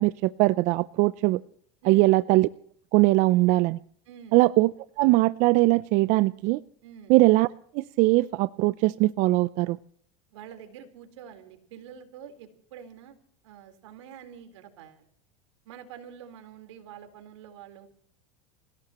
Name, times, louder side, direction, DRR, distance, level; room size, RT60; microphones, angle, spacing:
voice 1, 0.0-1.4 1.9-2.5 2.9-3.8 4.3-4.7 5.0-6.6 7.1-7.5 7.7-9.8, right 20 dB, 55° right, 16 dB, 0.5 m, -21 dB
voice 2, 4.1-4.4 6.8-7.1 10.3-13.2 13.4-15.1 15.6-17.9, right 8 dB, 85° right, 7 dB, 4.1 m, -46 dB
27.5 x 17.0 x 3.0 m, 0.62 s
supercardioid pair, 120°, 15 cm